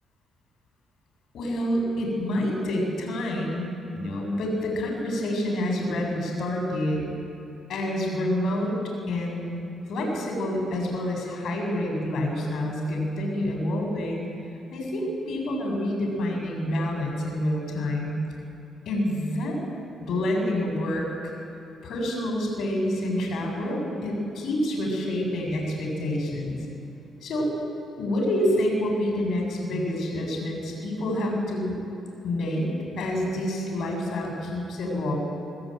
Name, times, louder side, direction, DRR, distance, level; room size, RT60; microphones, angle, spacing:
voice 1, 1.3-7.1 7.7-8.8 9.1-9.6 9.9-14.2 14.7-18.1 18.9-19.6 20.0-21.3 21.8-26.6 27.2-27.5 28.0-31.8 32.2-32.7 33.0-35.2, left 1 dB, 70° left, 1 dB, 7.6 m, -27 dB
25.0 x 18.0 x 9.2 m, 2.9 s
cardioid pair, 90°, 0 cm